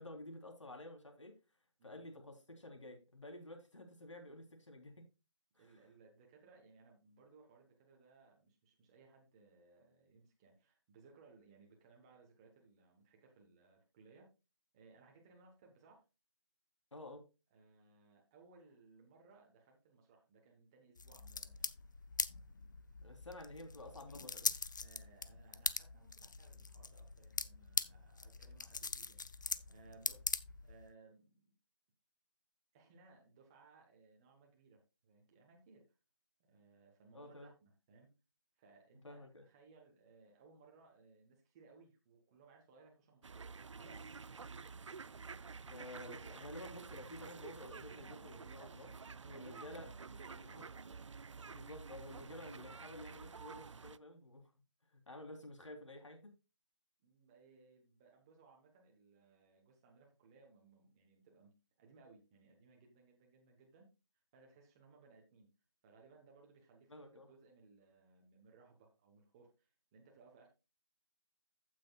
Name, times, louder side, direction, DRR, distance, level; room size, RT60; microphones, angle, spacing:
voice 1, 0.0-1.4 1.8-5.1 5.6-5.7 16.9-17.2 23.0-24.6 37.1-37.5 39.0-39.4 45.6-49.9 50.4-50.7 51.4-54.5 54.9-56.3 66.9-67.3, left 1 dB, 75° left, 3.4 m, -51 dB
voice 2, 5.6-14.3 14.7-16.0 17.5-21.7 24.8-30.3 30.6-31.5 32.7-35.8 36.5-38.1 38.6-44.1 49.2-51.1 57.0-61.5 61.8-63.9 64.3-65.5 65.8-70.5, right 4 dB, 10° right, 1.0 m, -64 dB
sound 1, 21.0-30.9, left 4 dB, 40° left, 0.5 m, -42 dB
sound 2, 43.2-54.0, right 5 dB, 75° right, 0.5 m, -50 dB
15.0 x 6.1 x 2.3 m
figure-of-eight pair, 165°, 16 cm